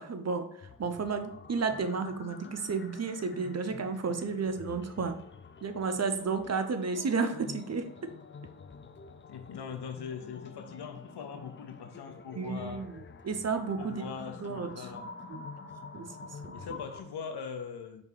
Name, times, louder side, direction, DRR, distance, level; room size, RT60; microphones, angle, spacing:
voice 1, 0.0-5.2 5.6-7.9 12.4-14.0 14.4-14.9 15.3-15.5 15.9-16.1 16.4-16.6, right 4 dB, 45° right, 8 dB, 0.5 m, -32 dB
sound 1, 0.6-17.0, left 4 dB, 30° left, 0.4 m, -48 dB
voice 2, 9.3-12.9 13.8-15.1 16.5-18.0, left 6 dB, 90° left, 7 dB, 0.6 m, -41 dB
4.7 x 2.7 x 3.8 m, 0.70 s
cardioid pair, 55°, 39 cm